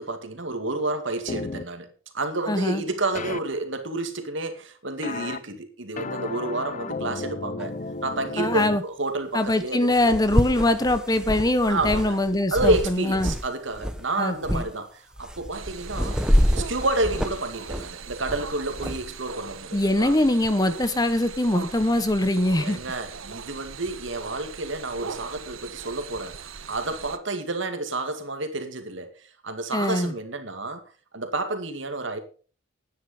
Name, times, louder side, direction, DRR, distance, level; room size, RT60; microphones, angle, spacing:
voice 1, 0.0-1.9 2.1-7.7 8.0-10.2 11.7-12.2 12.5-16.2 16.6-20.1 22.6-26.4 26.7-29.1 29.4-30.8 31.1-32.2, right 2 dB, 65° right, 2.2 m, -29 dB
sound 1, 1.3-1.6 3.1-3.4 5.0-5.4 6.0-8.8, left 3 dB, 40° left, 0.6 m, -33 dB
voice 2, 2.5-2.8 8.4-8.8 9.3-13.3 14.2-14.6 19.7-22.8 29.7-30.1, left 1 dB, 20° left, 0.9 m, -23 dB
sound 2, 7.6-7.7 9.5-9.6 9.9-13.5 13.7-14.0 14.4-14.7 15.2-19.0, equal, 5° right, 1.0 m, -27 dB
sound 3, 15.5-27.2, right 5 dB, 90° right, 1.2 m, -40 dB
11.0 x 9.6 x 5.4 m
head